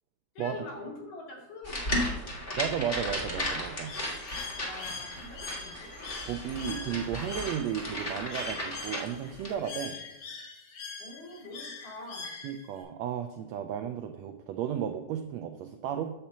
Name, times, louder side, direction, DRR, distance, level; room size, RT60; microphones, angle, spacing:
voice 1, 0.4-2.3 4.6-5.9 11.0-12.3, left 2 dB, 65° left, -2 dB, 3.5 m, -44 dB
sound 1, 1.6-9.5, left 1 dB, 40° left, 0.8 m, -35 dB
voice 2, 2.6-4.0 6.2-10.0 12.4-16.1, right 9 dB, 85° right, 6 dB, 1.5 m, -34 dB
Bird, 3.9-12.8, left 4 dB, 85° left, 3.2 m, -43 dB
9.0 x 4.4 x 6.9 m, 0.99 s
omnidirectional pair, 3.6 m